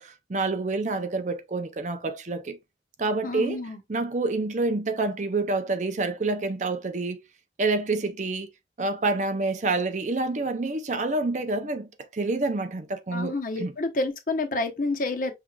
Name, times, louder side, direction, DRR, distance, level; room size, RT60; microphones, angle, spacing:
voice 1, 0.0-2.6 3.0-3.6 3.9-7.2 7.6-8.5 8.8-13.7, right 3 dB, 40° right, 0.5 m, -28 dB
voice 2, 3.2-3.8 13.1-15.3, left 2 dB, 50° left, 0.9 m, -29 dB
6.0 x 3.3 x 2.3 m
head